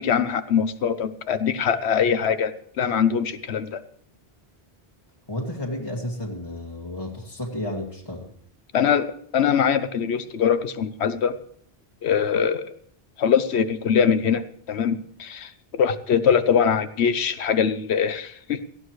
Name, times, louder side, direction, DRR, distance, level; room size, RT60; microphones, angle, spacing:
voice 1, 0.0-3.8 8.7-11.4 12.0-12.7 13.2-14.4 14.7-18.6, left 7 dB, 85° left, 12 dB, 1.1 m, -22 dB
voice 2, 5.3-8.3, left 1 dB, 20° left, -3 dB, 2.1 m, -32 dB
18.0 x 15.0 x 3.2 m, 0.63 s
omnidirectional pair, 1.1 m